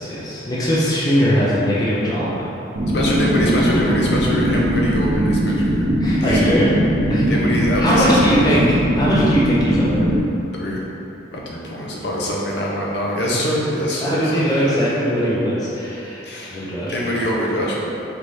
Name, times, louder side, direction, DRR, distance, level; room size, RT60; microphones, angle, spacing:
voice 1, 0.0-2.5 6.0-6.7 7.1-7.3 7.8-8.6 8.9-10.1 13.3-13.4 14.0-16.2 16.5-16.9, equal, 20° left, -8 dB, 0.6 m, -20 dB
sound 1, 2.8-10.2, equal, 70° right, 0.7 m, -20 dB
voice 2, 2.9-5.9 6.2-6.5 7.3-8.7 10.5-10.8 11.3-14.9 15.3-15.4 16.2-17.9, equal, 65° left, -4 dB, 0.6 m, -24 dB
4.0 x 3.4 x 3.2 m, 2.8 s
head